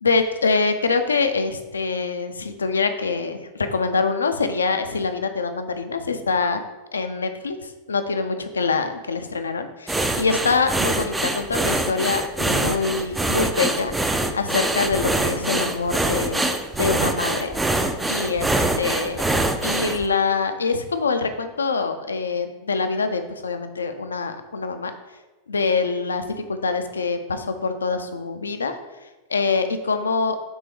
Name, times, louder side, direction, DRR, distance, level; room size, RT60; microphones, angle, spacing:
voice 1, 0.0-6.6 6.9-17.5 18.1-19.2 19.6-24.9 25.5-28.8 29.3-30.4, left 4 dB, 75° left, 8 dB, 0.3 m, -25 dB
sound 1, 9.9-20.1, right 2 dB, 10° right, 0.3 m, -24 dB
4.4 x 3.3 x 3.3 m, 1.1 s
figure-of-eight pair, 90°, 0 cm